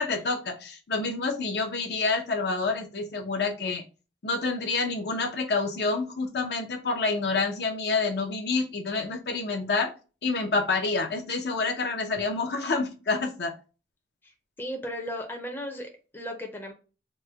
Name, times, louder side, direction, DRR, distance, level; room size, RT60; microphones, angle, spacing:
voice 1, 0.0-3.8 4.2-9.9 10.2-13.5, left 3 dB, 65° left, 3 dB, 0.6 m, -28 dB
voice 2, 14.6-16.7, equal, 10° left, 2 dB, 0.5 m, -36 dB
3.1 x 2.1 x 3.4 m, 0.33 s
head